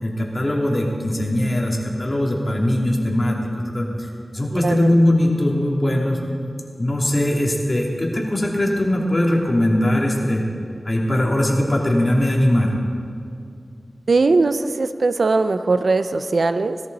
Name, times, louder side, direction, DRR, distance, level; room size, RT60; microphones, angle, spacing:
voice 1, 0.0-3.4 3.7-4.1 4.3-6.2 6.8-10.4 10.8-12.7, left 1 dB, 35° left, -2 dB, 2.9 m, -20 dB
voice 2, 4.5-4.9 14.1-16.8, right 3 dB, 75° right, 10 dB, 0.6 m, -20 dB
19.5 x 13.5 x 4.1 m, 2.4 s
wide cardioid pair, 60°, 0 cm